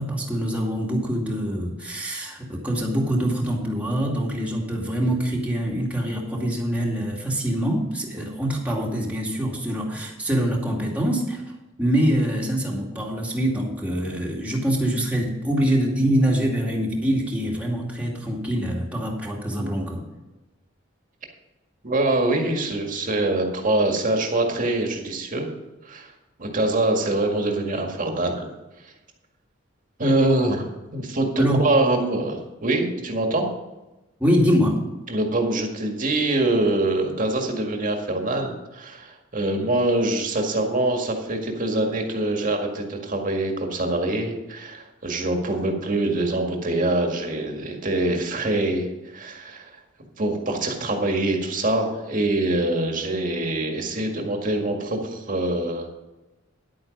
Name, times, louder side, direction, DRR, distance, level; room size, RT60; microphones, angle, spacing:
voice 1, 0.0-11.4 11.8-20.0 31.4-31.6 34.2-34.8, equal, 10° right, -2 dB, 2.4 m, -24 dB
voice 2, 21.8-25.5 25.8-26.1 26.4-28.5 28.8-28.9 30.0-33.5 35.1-49.7 50.2-55.9, right 2 dB, 45° right, 3 dB, 1.9 m, -24 dB
11.0 x 8.8 x 5.2 m, 1.0 s
head